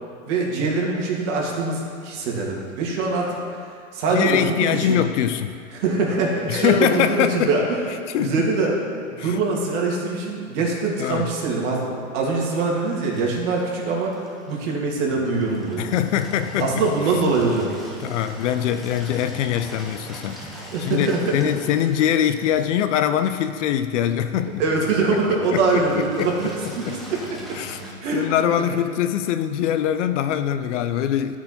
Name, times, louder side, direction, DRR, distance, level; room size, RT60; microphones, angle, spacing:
voice 1, 0.3-3.4 3.9-5.0 5.7-7.8 8.2-8.8 9.1-15.9 16.6-17.7 20.7-21.4 24.6-27.4 28.0-28.3, right 3 dB, 60° right, -2 dB, 2.3 m, -23 dB
voice 2, 4.1-5.6 6.5-7.5 8.1-8.3 9.2-9.4 11.0-11.3 15.8-16.8 18.0-24.6 25.5-26.5 26.9-27.0 27.6-27.8 28.1-31.4, left 10 dB, 60° left, 10 dB, 0.6 m, -23 dB
Engine, 12.8-27.9, right 1 dB, ahead, 0.3 m, -40 dB
13.0 x 4.8 x 4.3 m, 2.5 s
hypercardioid pair, 130°, 41 cm